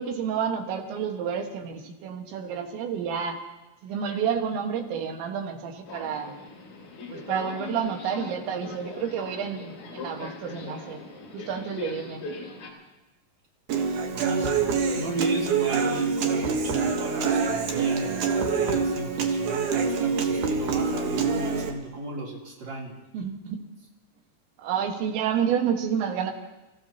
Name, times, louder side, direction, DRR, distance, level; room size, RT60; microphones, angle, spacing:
voice 1, 0.0-3.4 3.8-6.4 7.1-11.0 11.3-12.2 23.1-23.6 24.6-26.3, right 7 dB, 85° right, 3 dB, 3.8 m, -29 dB
Subway metro underground, 5.9-12.7, left 3 dB, 60° left, 4.2 m, -40 dB
Human voice / Acoustic guitar, 13.7-21.7, right 5 dB, 65° right, 2.1 m, -25 dB
voice 2, 14.1-22.9, right 2 dB, 30° right, -4 dB, 3.2 m, -35 dB
29.0 x 15.0 x 2.9 m, 1.0 s
omnidirectional pair, 5.1 m